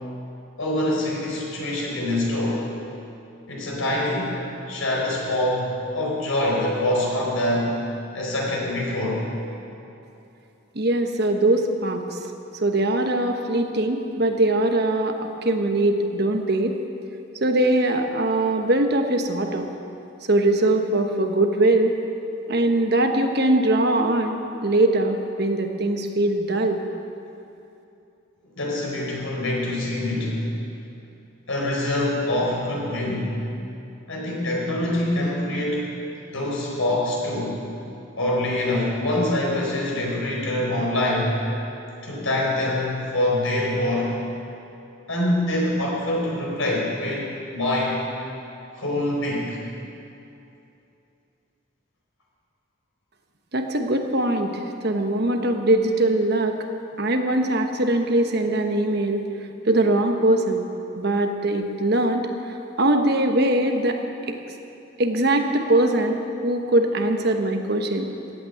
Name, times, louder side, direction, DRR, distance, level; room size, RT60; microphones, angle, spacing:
voice 1, 0.6-2.7 3.5-4.4 4.7-7.8 8.1-9.2 28.6-30.4 31.5-33.4 34.1-36.0 36.3-37.6 38.2-41.4 42.0-44.2 45.1-48.0 48.7-49.6, left 1 dB, 85° left, -3 dB, 4.7 m, -25 dB
voice 2, 10.7-12.2 12.6-16.8 17.4-19.7 20.3-22.0 22.5-26.8 53.5-56.6 57.0-59.2 59.6-60.6 60.9-62.3 62.8-64.0 64.3-64.4 65.0-68.1, right 1 dB, 50° right, 4 dB, 1.2 m, -21 dB
15.5 x 9.2 x 9.4 m, 2.8 s
head